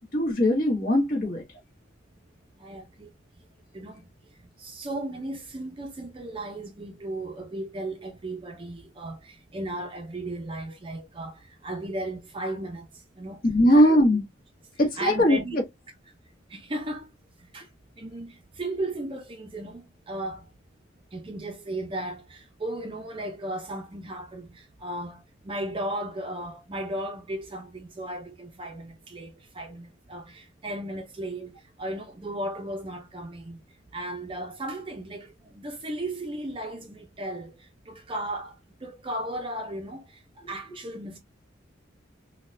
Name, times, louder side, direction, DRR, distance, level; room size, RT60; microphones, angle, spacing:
voice 1, 0.1-1.4 13.4-14.2 14.8-15.6, equal, 45° left, 1.2 m, -20 dB
voice 2, 2.6-3.1 3.7-4.1 4.6-13.4 13.7-14.0 15.0-15.5 16.5-17.1 17.4-17.7 18.0-20.5 21.1-33.6 33.9-41.2, right 1 dB, 25° right, 0.5 m, -35 dB
3.8 x 2.2 x 2.4 m
head